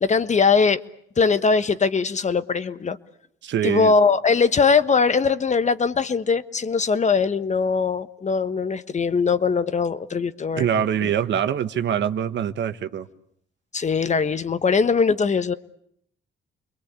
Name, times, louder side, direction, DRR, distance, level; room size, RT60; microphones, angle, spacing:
voice 1, 0.0-0.8 1.2-3.0 3.6-10.7 11.0-11.1 13.7-15.5, left 5 dB, 35° left, 1.3 m, -21 dB
voice 2, 3.4-3.9 10.6-13.1, right 9 dB, 65° right, 1.4 m, -24 dB
29.0 x 22.0 x 8.4 m
cardioid pair, 90°, 20 cm